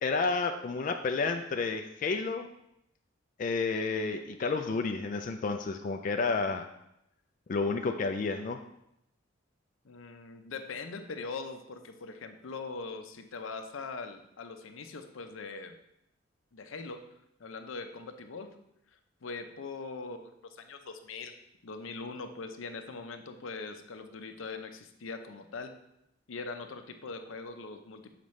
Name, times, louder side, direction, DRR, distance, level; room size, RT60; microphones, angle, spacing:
voice 1, 0.0-2.5 3.4-6.7 7.5-8.6, left 4 dB, 40° left, 5 dB, 0.3 m, -30 dB
voice 2, 9.8-15.8 16.5-17.0 17.4-18.5 19.2-21.3 21.6-25.7 26.3-28.1, left 4 dB, 85° left, 7 dB, 0.6 m, -41 dB
7.0 x 5.0 x 3.2 m, 0.81 s
head